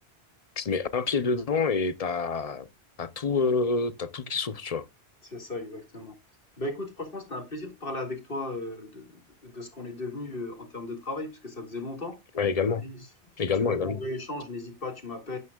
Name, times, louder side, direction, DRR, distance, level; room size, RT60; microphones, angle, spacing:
voice 1, 0.6-2.7 3.0-4.9 12.3-12.8 13.4-14.0, left 4 dB, 40° left, 0.8 m, -27 dB
voice 2, 5.2-6.2 6.6-12.2 12.8-13.0 13.6-15.4, left 2 dB, 60° left, 2.2 m, -36 dB
11.5 x 9.5 x 2.3 m
omnidirectional pair, 1.1 m